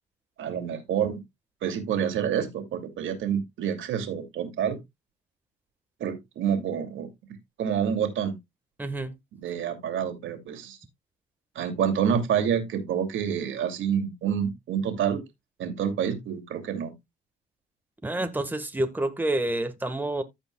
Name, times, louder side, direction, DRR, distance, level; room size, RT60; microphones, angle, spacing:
voice 1, 0.4-1.2 1.6-4.8 6.0-7.1 7.6-8.4 9.3-10.8 11.5-15.2 15.6-16.9, right 8 dB, 80° right, 2.6 m, -28 dB
voice 2, 8.8-9.1 18.0-20.2, right 1 dB, 10° right, 1.5 m, -28 dB
15.0 x 5.2 x 2.3 m
cardioid pair, 90°, 20 cm